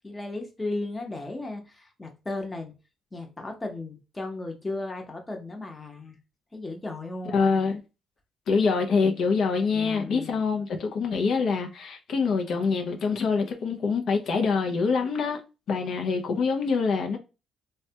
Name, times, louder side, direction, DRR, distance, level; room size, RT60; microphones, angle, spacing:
voice 1, 0.0-2.7 3.1-6.2 6.5-7.6 9.7-10.4, left 2 dB, 20° left, 0.8 m, -35 dB
voice 2, 7.3-7.8 8.5-15.4 15.7-17.2, left 5 dB, 70° left, 0.5 m, -25 dB
3.2 x 2.2 x 2.7 m
cardioid pair, 90°, 0 cm